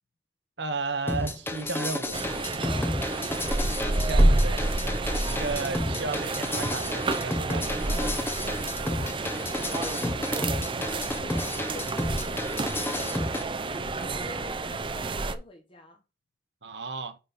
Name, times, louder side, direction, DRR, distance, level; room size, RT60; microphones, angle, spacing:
voice 1, 0.6-2.2 3.9-4.6 5.3-8.1 16.6-17.2, right 3 dB, 75° right, 1.2 m, -34 dB
sound 1, 1.1-13.4, left 1 dB, 15° left, 0.8 m, -32 dB
sound 2, 2.1-15.3, right 2 dB, 30° right, 0.6 m, -29 dB
voice 2, 2.6-3.7 8.8-9.1 9.4-10.6 10.8-12.5 12.7-16.0, left 2 dB, 30° left, 1.2 m, -46 dB
sound 3, 8.3-15.3, left 1 dB, 60° left, 3.2 m, -50 dB
9.7 x 4.2 x 4.1 m
head